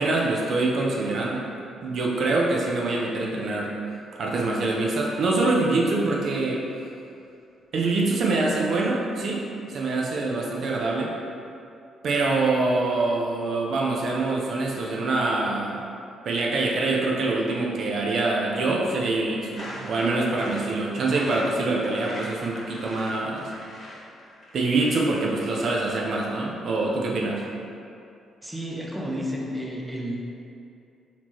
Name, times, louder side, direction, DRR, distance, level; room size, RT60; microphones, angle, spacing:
voice 1, 0.0-1.5 1.8-3.7 4.2-6.6 7.7-11.1 12.0-15.8 16.3-23.5 24.5-27.4, right 2 dB, 60° right, -2 dB, 0.5 m, -25 dB
sound 1, 19.6-26.2, left 1 dB, 40° left, 1.0 m, -41 dB
voice 2, 28.4-30.2, equal, 10° right, -2 dB, 0.6 m, -31 dB
4.2 x 2.9 x 3.0 m, 2.6 s
cardioid pair, 90°, 0 cm